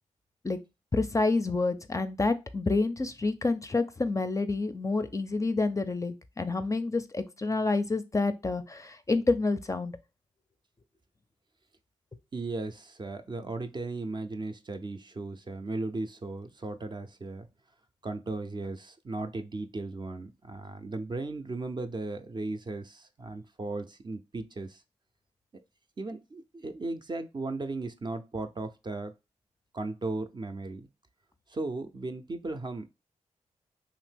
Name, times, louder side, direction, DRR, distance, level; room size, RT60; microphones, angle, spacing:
voice 1, 0.9-9.9, left 3 dB, 25° left, 0.5 m, -28 dB
voice 2, 12.3-17.5 18.0-24.8 26.0-29.1 29.7-30.9 31.5-32.9, right 2 dB, 35° right, 0.5 m, -36 dB
2.8 x 2.5 x 3.4 m
supercardioid pair, 40°, 13 cm